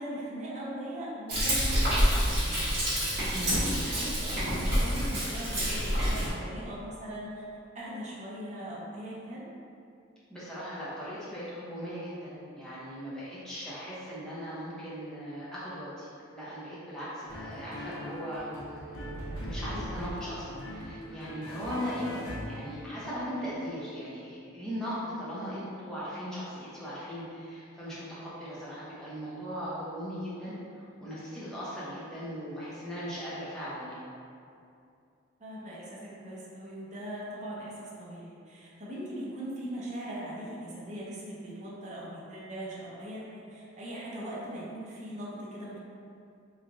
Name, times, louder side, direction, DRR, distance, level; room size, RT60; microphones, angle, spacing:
voice 1, 0.0-2.8 3.1-7.4 7.7-9.5 35.4-45.8, right 1 dB, 35° right, -7 dB, 0.7 m, -40 dB
Frying (food), 1.3-6.3, equal, 50° right, 1.4 m, -27 dB
voice 2, 3.3-3.6 10.3-16.1 16.3-18.5 19.4-34.1, equal, 5° left, -10 dB, 0.8 m, -38 dB
sound 1, 17.3-23.0, equal, 75° left, 0.7 m, -40 dB
3.2 x 2.4 x 3.7 m, 2.5 s
head